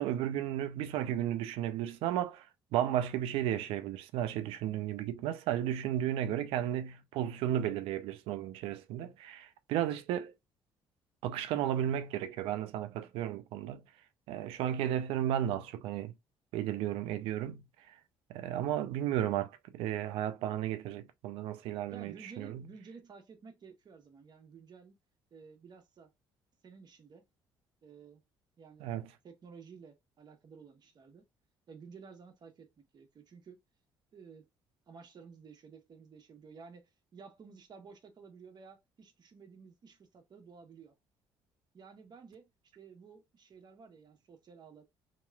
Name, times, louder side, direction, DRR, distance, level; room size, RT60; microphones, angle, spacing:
voice 1, 0.0-10.3 11.2-13.8 14.3-16.1 16.5-17.9 18.3-22.7 28.8-29.1, right 11 dB, 80° right, 0.5 m, -34 dB
voice 2, 21.9-25.0 25.3-26.1 26.6-27.2 27.8-28.2 28.6-29.0 29.2-31.3 31.7-33.6 34.1-34.5 34.9-40.9 41.7-42.5 42.7-44.8, right 5 dB, 50° right, 1.1 m, -53 dB
3.0 x 2.9 x 2.3 m
supercardioid pair, 75°, 9 cm